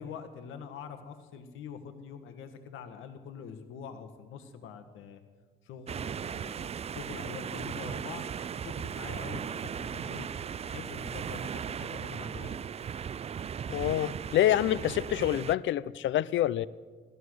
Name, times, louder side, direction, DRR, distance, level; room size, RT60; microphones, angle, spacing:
voice 1, 0.0-5.2 5.6-8.3 8.6-10.3 10.6-12.6, left 6 dB, 90° left, 8 dB, 1.6 m, -44 dB
sound 1, 5.9-15.6, right 8 dB, 30° right, 0.4 m, -37 dB
voice 2, 13.7-16.7, left 12 dB, 75° left, 20 dB, 0.5 m, -27 dB
15.5 x 14.0 x 6.3 m, 1.5 s
cardioid pair, 90°, 20 cm